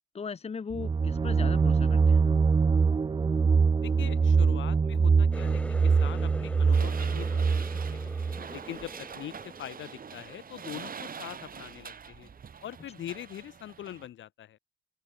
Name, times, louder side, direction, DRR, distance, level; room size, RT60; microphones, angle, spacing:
voice 1, 0.1-2.2, left 5 dB, 30° left, 1.2 m, -38 dB
sound 1, 0.7-8.4, right 5 dB, 25° right, 0.5 m, -24 dB
voice 2, 3.8-8.1 8.5-12.3 12.6-14.6, left 11 dB, 70° left, 2.5 m, -43 dB
Water tap faucet, 5.3-10.8 11.2-11.7 12.1-12.4 13.1-13.2, left 1 dB, 5° left, 3.2 m, -44 dB
sound 2, 6.7-14.1, right 6 dB, 45° right, 5.2 m, -44 dB
open air
cardioid pair, 90°, 20 cm